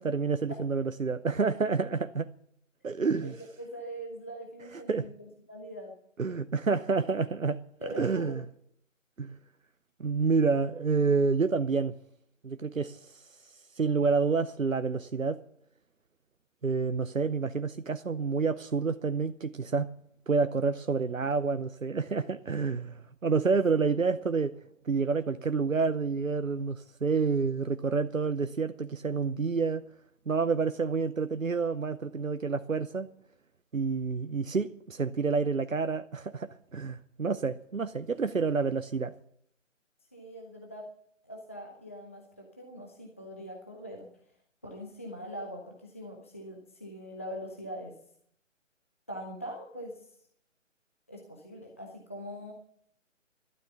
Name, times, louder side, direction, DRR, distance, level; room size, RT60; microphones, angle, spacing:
voice 1, 0.0-2.3 2.8-3.4 4.9-5.1 6.2-8.4 9.2-9.4 10.0-11.9 12.4-15.4 16.6-19.9 20.3-24.6 24.8-29.8 30.3-33.1 33.7-39.1, right 4 dB, 90° right, 0.8 m, -29 dB
voice 2, 3.6-5.9 7.8-8.4 40.1-40.9 41.2-44.1 44.6-48.0 49.1-50.1 51.1-52.5, equal, 10° left, 0.6 m, -42 dB
12.5 x 12.0 x 7.0 m
figure-of-eight pair, 145°, 39 cm